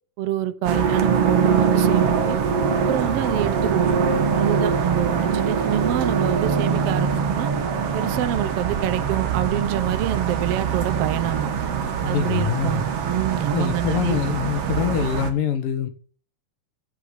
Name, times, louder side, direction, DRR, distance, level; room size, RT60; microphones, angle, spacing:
voice 1, 0.2-2.4 2.7-3.9 4.4-7.5 7.9-11.5 12.0-14.2, right 11 dB, 75° right, 1.4 m, -26 dB
sound 1, 0.6-15.3, right 6 dB, 55° right, 2.0 m, -23 dB
voice 2, 12.0-12.8 13.5-15.9, left 9 dB, 80° left, 3.1 m, -24 dB
8.3 x 7.1 x 8.1 m
omnidirectional pair, 3.9 m